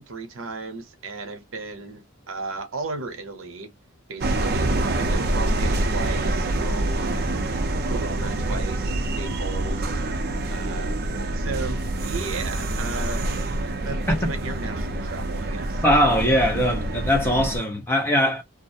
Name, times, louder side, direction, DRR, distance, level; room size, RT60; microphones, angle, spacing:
voice 1, 0.0-3.7 4.1-7.5 7.8-10.0 10.5-11.0 11.3-13.3 13.8-15.8, right 3 dB, 85° right, 0.7 m, -35 dB
sound 1, 4.2-17.6, right 2 dB, 50° right, 0.4 m, -26 dB
voice 2, 15.8-18.4, equal, 10° left, 0.7 m, -21 dB
2.3 x 2.0 x 2.6 m
head